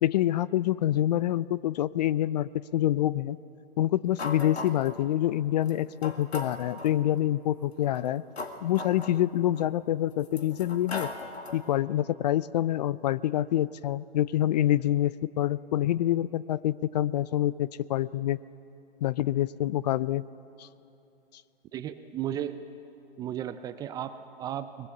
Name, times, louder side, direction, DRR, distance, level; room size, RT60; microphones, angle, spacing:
voice 1, 0.0-3.4 3.8-8.2 8.6-11.1 11.5-18.4 19.0-20.3 20.6-20.7, left 13 dB, 45° left, 20 dB, 0.5 m, -26 dB
sound 1, 4.2-5.0 5.7-5.8 6.0-7.0 7.8-9.7 10.2-11.7, left 3 dB, 85° left, 1.9 m, -38 dB
voice 2, 21.7-22.6 23.2-24.9, right 10 dB, 15° right, 11 dB, 0.4 m, -35 dB
23.0 x 21.0 x 7.2 m, 2.7 s
hypercardioid pair, 120°, 31 cm